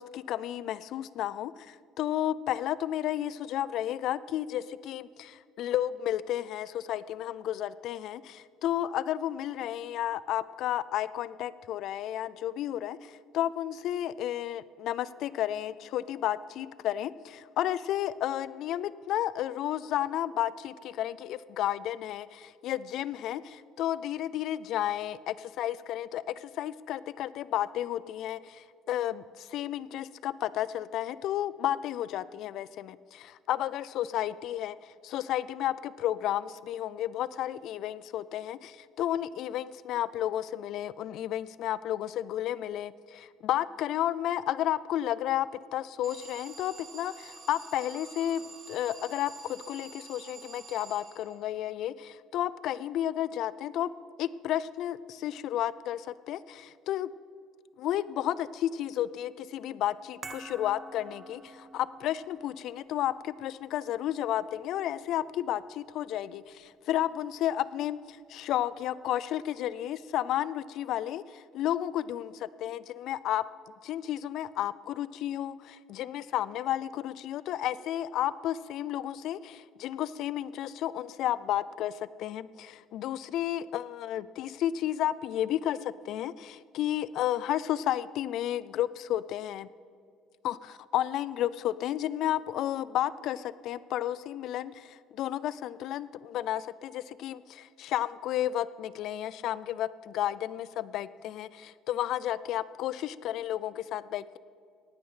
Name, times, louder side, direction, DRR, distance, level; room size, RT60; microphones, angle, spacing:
voice 1, 0.0-34.8 35.0-48.4 48.7-53.9 54.2-57.1 57.8-73.4 73.8-89.7 90.4-104.4, left 12 dB, 60° left, 18 dB, 0.3 m, -32 dB
Alarm, 46.0-51.6, right 4 dB, 45° right, 3.1 m, -48 dB
sound 1, 60.2-66.6 66.9-67.0, right 3 dB, 25° right, 0.6 m, -51 dB
18.5 x 6.5 x 5.6 m, 2.2 s
cardioid pair, 145°, 0 cm